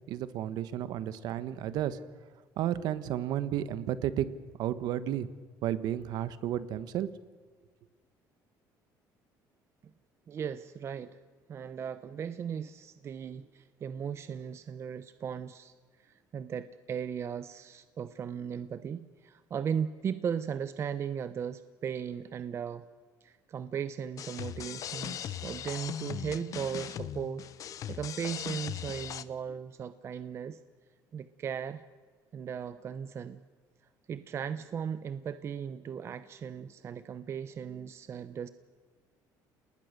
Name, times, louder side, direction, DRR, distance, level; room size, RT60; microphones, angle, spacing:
voice 1, 0.0-2.0 2.6-4.3 4.6-5.3 5.6-7.1, right 11 dB, 70° right, 14 dB, 1.3 m, -32 dB
voice 2, 10.3-11.2 11.5-22.8 23.2-30.6 31.1-31.8 32.3-33.4 34.1-38.5, right 7 dB, 40° right, 12 dB, 0.8 m, -37 dB
sound 1, 24.2-29.2, left 10 dB, 50° left, 0.9 m, -39 dB
29.0 x 19.5 x 6.7 m, 1.5 s
cardioid pair, 130°, 7 cm